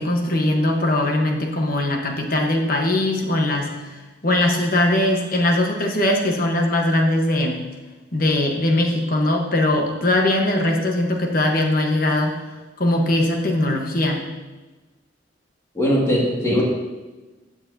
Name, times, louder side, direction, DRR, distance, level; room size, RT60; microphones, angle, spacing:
voice 1, 0.0-3.7 4.2-7.6 8.1-12.4 12.8-14.2, left 1 dB, 50° left, 1 dB, 1.3 m, -20 dB
voice 2, 15.7-16.6, equal, 15° left, -5 dB, 2.3 m, -19 dB
15.5 x 6.9 x 2.8 m, 1.2 s
head